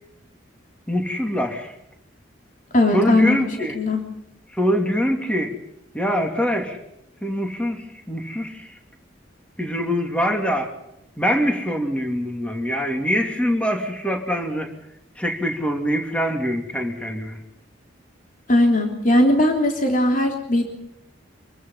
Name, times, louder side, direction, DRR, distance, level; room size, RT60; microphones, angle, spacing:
voice 1, 0.9-1.7 2.9-3.8 4.5-5.5 5.9-6.8 7.2-8.8 9.6-10.7 11.2-14.7 15.2-17.4, equal, 5° left, 3 dB, 2.8 m, -24 dB
voice 2, 2.7-3.4 3.7-4.0 18.5-20.8, left 1 dB, 45° left, 2 dB, 3.4 m, -18 dB
26.0 x 23.0 x 5.6 m, 0.81 s
head